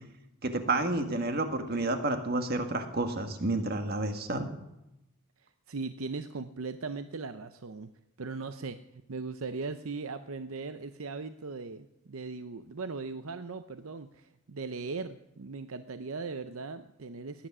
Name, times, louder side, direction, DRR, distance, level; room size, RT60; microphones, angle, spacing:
voice 1, 0.4-4.5, right 2 dB, 45° right, 6 dB, 1.7 m, -30 dB
voice 2, 5.4-7.9 8.2-8.8 9.1-17.5, right 4 dB, 70° right, 10 dB, 0.7 m, -39 dB
19.0 x 10.0 x 6.1 m, 0.90 s
head